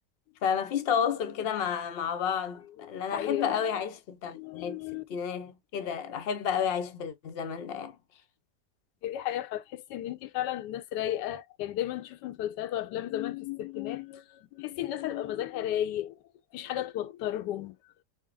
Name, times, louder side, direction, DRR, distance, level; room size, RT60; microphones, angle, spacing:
voice 1, 0.4-7.9, left 7 dB, 60° left, 0.6 m, -31 dB
voice 2, 2.8-3.6 4.3-5.0 9.0-16.2 16.5-17.7, left 12 dB, 85° left, 1.2 m, -34 dB
4.4 x 2.1 x 3.2 m
omnidirectional pair, 1.8 m